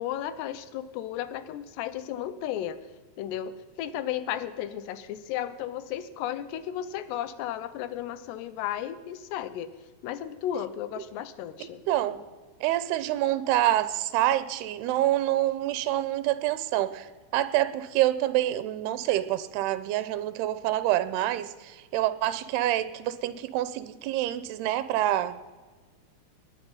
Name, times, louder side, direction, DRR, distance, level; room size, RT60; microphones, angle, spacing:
voice 1, 0.0-2.8 3.2-9.8 10.0-11.8, left 11 dB, 90° left, 14 dB, 3.0 m, -34 dB
voice 2, 11.9-12.2 12.6-17.1 17.3-25.4, right 14 dB, 85° right, 14 dB, 2.7 m, -27 dB
20.0 x 10.0 x 5.6 m, 1.4 s
omnidirectional pair, 4.7 m